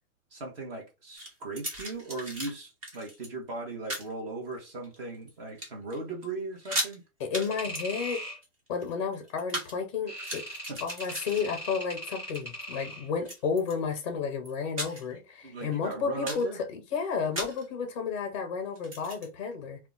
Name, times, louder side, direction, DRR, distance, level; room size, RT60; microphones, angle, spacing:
voice 1, 0.3-7.0 10.7-10.8 15.4-16.6, right 2 dB, 40° right, 1.3 m, -38 dB
sound 1, 1.1-2.5 2.8-3.3 3.9-4.1 4.7-5.3 5.6-6.0 6.2-6.3 6.6-7.0 7.3-7.5 7.7-9.7 10.1-11.9 12.2-12.6 13.2-14.0 14.4-15.2 15.5-15.6 16.0-16.5 17.4-17.7 18.8-19.3, right 1 dB, 25° right, 0.7 m, -37 dB
voice 2, 7.2-8.2 8.7-10.4 10.8-19.8, left 6 dB, 20° left, 0.5 m, -32 dB
sound 2, 7.5-8.4 10.1-13.1, equal, 5° right, 1.0 m, -39 dB
2.8 x 2.3 x 3.7 m
hypercardioid pair, 170°, 43 cm